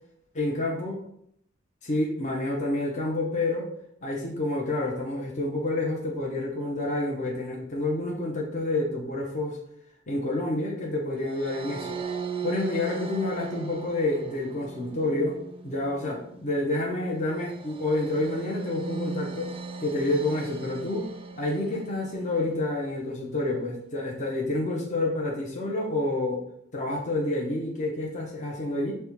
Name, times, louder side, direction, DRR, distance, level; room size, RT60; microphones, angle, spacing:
voice 1, 0.3-1.0 1.8-3.7 4.0-9.6 10.1-12.0 12.4-15.4 15.6-19.5 19.8-21.1 21.4-26.4 26.7-29.0, left 2 dB, 40° left, -2 dB, 0.6 m, -28 dB
sound 1, 11.3-22.6, right 4 dB, 30° right, 0.3 m, -38 dB
5.1 x 2.1 x 2.9 m, 0.72 s
head